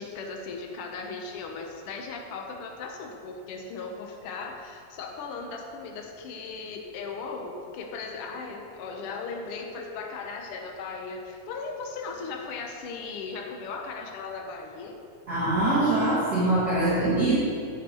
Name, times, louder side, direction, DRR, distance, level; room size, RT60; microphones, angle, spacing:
voice 1, 0.0-15.0, left 4 dB, 80° left, 2 dB, 1.3 m, -37 dB
voice 2, 15.3-17.4, right 2 dB, 35° right, -11 dB, 2.2 m, -23 dB
10.0 x 9.5 x 3.0 m, 2.4 s
omnidirectional pair, 3.7 m